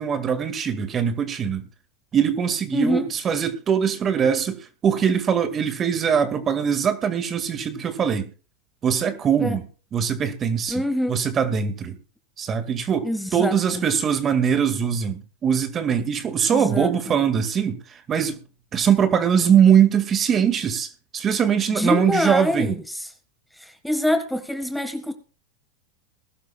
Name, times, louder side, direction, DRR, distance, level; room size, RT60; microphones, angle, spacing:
voice 1, 0.0-1.7 2.1-8.3 8.8-9.6 9.9-10.8 11.1-12.0 12.4-18.4 18.7-22.8, right 7 dB, 30° right, 2.1 m, -22 dB
voice 2, 2.7-3.0 9.4-9.6 10.7-11.2 13.0-13.8 16.5-16.9 21.7-23.1 23.6-25.1, left 1 dB, ahead, 1.7 m, -25 dB
20.5 x 12.0 x 2.4 m
hypercardioid pair, 105°, 0 cm